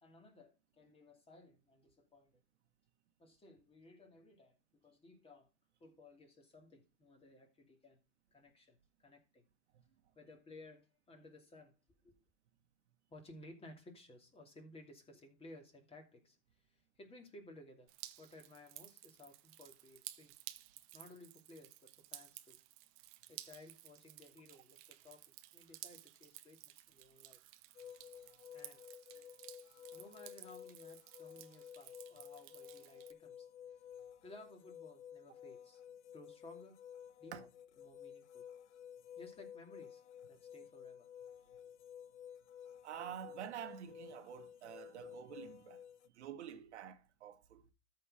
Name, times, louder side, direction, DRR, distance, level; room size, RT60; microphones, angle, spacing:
voice 1, 0.0-2.4 3.2-5.5 5.8-8.0 8.3-9.4 10.1-11.7 12.0-12.1 13.1-20.3 20.9-22.6 23.3-25.2 25.5-27.4 28.5-28.8 29.9-33.8 34.2-35.8 36.1-36.7 37.2-37.5 37.8-38.4 39.2-40.0 40.3-41.1, left 2 dB, 15° left, 2.7 m, -58 dB
Drip, 17.9-33.1, right 16 dB, 40° right, 0.9 m, -55 dB
sound 1, 27.7-46.1, left 9 dB, 80° left, 0.8 m, -54 dB
voice 2, 42.8-45.8 46.1-47.7, right 9 dB, 75° right, 1.5 m, -48 dB
13.5 x 4.5 x 5.0 m
hypercardioid pair, 120°, 35 cm